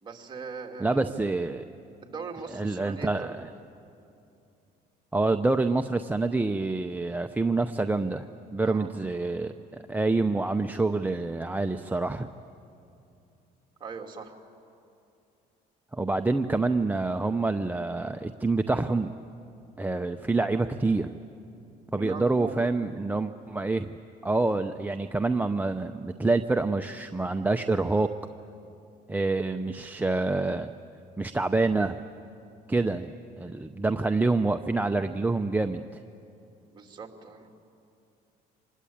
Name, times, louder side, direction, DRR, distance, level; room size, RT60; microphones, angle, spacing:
voice 1, 0.0-1.0 2.0-3.3 8.6-8.9 13.8-14.3 22.0-22.6 36.7-37.5, right 4 dB, 25° right, 1 dB, 2.7 m, -40 dB
voice 2, 0.8-1.6 2.5-3.5 5.1-12.3 15.9-19.1 19.8-21.2 21.9-23.9 24.2-28.1 29.1-30.7 31.2-32.0 32.7-36.0, right 3 dB, 10° right, 6 dB, 0.6 m, -27 dB
26.5 x 21.0 x 8.7 m, 2.7 s
cardioid pair, 110°, 17 cm